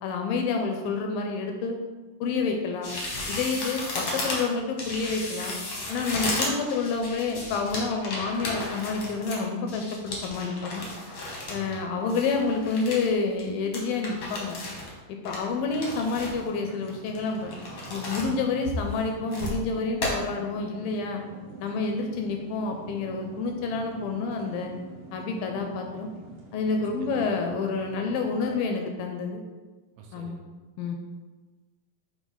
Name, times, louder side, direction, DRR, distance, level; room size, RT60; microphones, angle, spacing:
voice 1, 0.0-1.8 2.2-2.9 3.3-5.6 5.9-10.8 11.5-14.6 15.1-17.5 17.9-21.2 21.6-24.7 25.1-26.1 26.5-29.4 30.1-30.4 30.8-31.0, left 4 dB, 80° left, 3 dB, 2.1 m, -29 dB
sound 1, 2.8-11.8 12.1-13.1 13.4-13.5 13.7-14.9 15.2-16.5 16.9-18.3 18.6-19.6 20.0-20.1, left 2 dB, 60° left, 1.2 m, -34 dB
voice 2, 11.5-11.9 26.8-27.3 30.0-30.5, right 6 dB, 80° right, 2 dB, 2.3 m, -45 dB
sound 2, 15.6-28.6, right 3 dB, 60° right, 2.4 m, -46 dB
6.5 x 3.2 x 5.4 m, 1.3 s
omnidirectional pair, 4.3 m